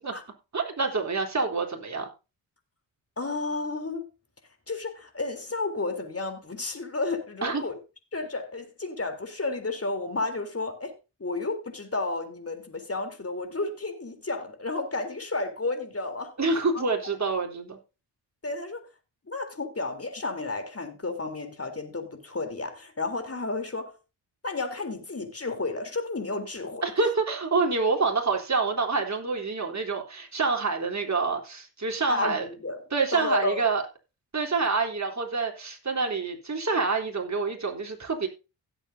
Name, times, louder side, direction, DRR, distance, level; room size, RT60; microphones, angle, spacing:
voice 1, 0.5-2.1 7.4-7.6 16.4-17.8 26.8-32.5 32.9-33.8 34.3-38.3, right 4 dB, 35° right, 3.8 m, -27 dB
voice 2, 3.2-4.1 4.7-7.8 8.1-16.4 16.7-16.8 18.4-18.9 19.2-24.0 24.4-26.9 32.1-32.8 33.1-33.6, left 3 dB, 30° left, 3.7 m, -32 dB
16.5 x 8.0 x 2.8 m
supercardioid pair, 50°, 49 cm